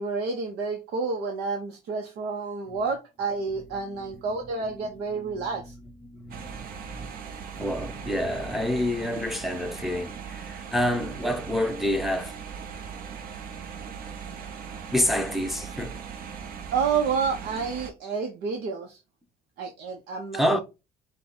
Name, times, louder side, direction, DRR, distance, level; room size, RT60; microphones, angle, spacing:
voice 1, 0.0-5.7 16.7-19.0 19.6-20.6, right 5 dB, 75° right, 0.9 m, -29 dB
voice 2, 5.2-5.6 6.0-7.1 7.6-12.4 14.9-16.0 20.3-20.6, left 1 dB, ahead, 0.7 m, -28 dB
sound 1, 6.3-17.9, right 7 dB, 60° right, 0.9 m, -39 dB
5.4 x 2.3 x 3.9 m
cardioid pair, 110°, 17 cm